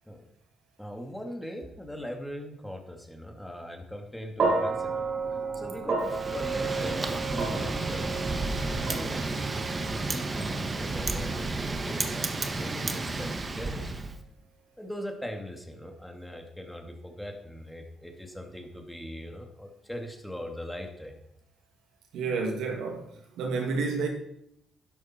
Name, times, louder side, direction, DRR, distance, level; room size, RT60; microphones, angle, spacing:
voice 1, 0.8-8.2 8.6-13.9 14.8-21.2, equal, 5° left, 2.4 m, -40 dB
sound 1, 4.4-12.7, right 4 dB, 60° right, 3.8 m, -33 dB
Wind, 6.0-14.2, right 3 dB, 30° right, 1.5 m, -32 dB
voice 2, 22.1-23.1 23.4-24.1, right 4 dB, 85° right, 2.5 m, -29 dB
13.0 x 10.5 x 4.5 m
cardioid pair, 90°, 0 cm